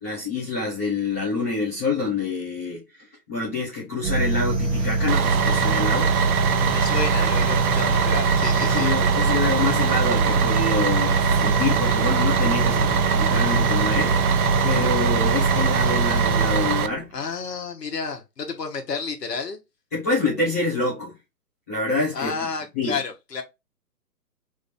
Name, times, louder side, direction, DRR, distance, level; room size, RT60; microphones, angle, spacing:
voice 1, 0.0-2.8 3.3-6.1 8.6-14.2 14.6-17.1 19.9-21.1 21.7-22.4 22.7-22.9, left 3 dB, 10° left, 0.5 m, -26 dB
sound 1, 4.0-17.0, right 2 dB, 15° right, 1.0 m, -23 dB
Bus, 5.1-16.9, right 8 dB, 65° right, 0.5 m, -23 dB
voice 2, 6.7-8.9 17.1-19.6 22.1-23.4, left 5 dB, 75° left, 1.2 m, -31 dB
3.3 x 2.6 x 3.5 m
figure-of-eight pair, 135°, 49 cm